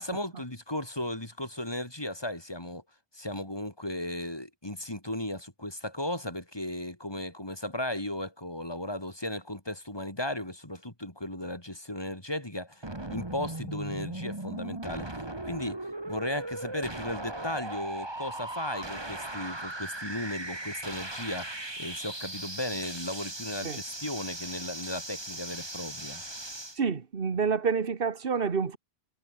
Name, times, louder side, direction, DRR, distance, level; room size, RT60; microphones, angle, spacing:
voice 1, 0.0-2.8 3.1-12.8 13.1-26.2, left 1 dB, 25° left, 3.5 m, -36 dB
sound 1, 12.8-26.8, right 1 dB, 25° right, 2.5 m, -38 dB
voice 2, 26.8-28.8, right 5 dB, 65° right, 1.6 m, -28 dB
omnidirectional pair, 1.0 m